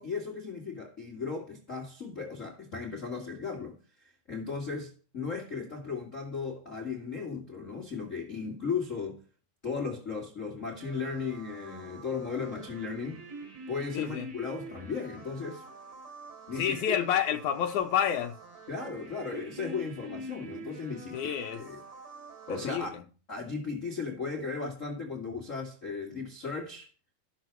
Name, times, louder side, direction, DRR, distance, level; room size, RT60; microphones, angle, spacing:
voice 1, 0.0-9.2 9.6-13.2 13.7-15.6 16.5-16.7 17.1-17.2 18.7-21.8 22.5-22.9 23.3-26.9, left 5 dB, 30° left, 1.5 m, -36 dB
sound 1, 10.8-22.7, right 2 dB, 50° right, 3.8 m, -46 dB
voice 2, 13.9-14.3 16.6-18.3 21.1-21.6 22.5-22.9, left 9 dB, 75° left, 2.0 m, -29 dB
14.0 x 6.7 x 4.6 m
omnidirectional pair, 4.1 m